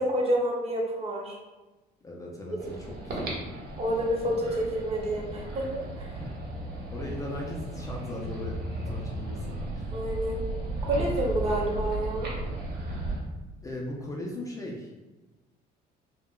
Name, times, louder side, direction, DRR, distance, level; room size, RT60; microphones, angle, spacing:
voice 1, 0.0-1.4 2.6-2.7 3.8-5.7 6.0-6.1 9.9-10.4 10.8-12.3, right 1 dB, 35° right, -2 dB, 0.7 m, -28 dB
voice 2, 2.0-3.3 6.2-6.3 6.9-8.6 8.9-9.5 9.7-9.9 13.6-14.9, left 1 dB, 20° left, -2 dB, 0.4 m, -38 dB
sound 1, 2.6-13.2, right 2 dB, 70° right, 0.8 m, -35 dB
3.3 x 2.1 x 2.3 m, 1.1 s
cardioid pair, 110°, 17 cm